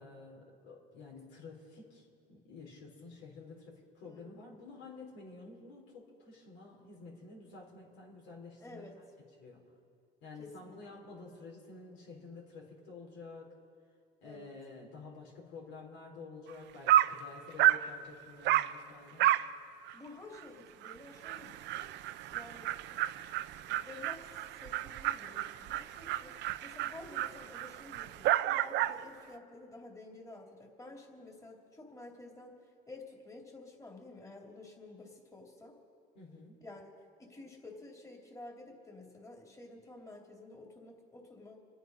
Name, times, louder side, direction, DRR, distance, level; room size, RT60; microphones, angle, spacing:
voice 1, 0.0-8.9 9.4-9.6 10.2-13.5 14.2-19.2 36.1-36.6, left 3 dB, 80° left, -1 dB, 4.2 m, -50 dB
voice 2, 4.0-4.5 8.6-9.0 10.4-11.0 14.2-14.5 19.9-21.9 22.3-23.2 23.6-26.3 26.6-35.8 36.6-36.9 37.2-41.6, left 2 dB, 15° left, -1 dB, 3.0 m, -51 dB
Dog, 16.5-16.6 16.9-17.2 17.6-17.9 18.4-18.7 19.2-19.5 19.9-20.0 20.4-20.5 20.8-20.9 21.2-29.0, right 14 dB, 65° right, 0.6 m, -31 dB
27.5 x 9.4 x 5.4 m, 2.4 s
supercardioid pair, 85°, 19 cm